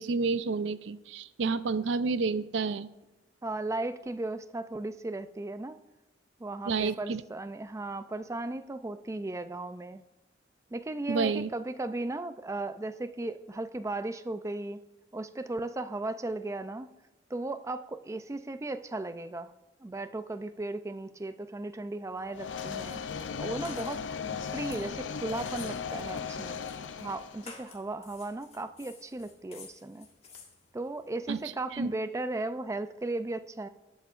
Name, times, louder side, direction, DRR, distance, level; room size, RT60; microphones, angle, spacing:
voice 1, 0.0-2.9 6.7-7.2 11.1-11.5 31.3-31.4 31.7-31.9, right 4 dB, 75° right, 14 dB, 0.5 m, -29 dB
voice 2, 3.4-5.8 6.4-10.0 10.7-14.8 15.1-16.9 17.3-19.5 19.8-23.0 23.4-24.0 24.5-26.6 27.0-30.1 30.7-33.7, right 2 dB, 15° right, 10 dB, 0.4 m, -36 dB
sound 1, 22.2-31.3, left 4 dB, 35° left, 1.7 m, -54 dB
sound 2, 22.3-27.5, left 6 dB, 90° left, 0.5 m, -37 dB
18.5 x 8.1 x 2.5 m, 0.99 s
head